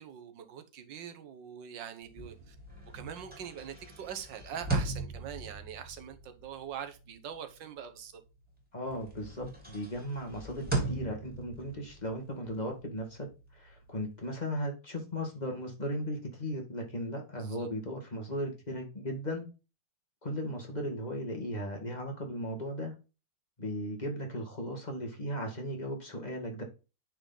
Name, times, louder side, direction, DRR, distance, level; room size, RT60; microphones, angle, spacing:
voice 1, 0.0-2.6 2.9-8.2 17.4-17.7, right 8 dB, 75° right, 1.7 m, -43 dB
sound 1, 2.1-8.5 8.9-14.3, right 2 dB, 5° right, 3.0 m, -39 dB
voice 2, 8.7-19.5 20.2-22.9 23.6-26.6, equal, 25° left, 1.6 m, -37 dB
9.1 x 4.4 x 3.9 m
omnidirectional pair, 2.0 m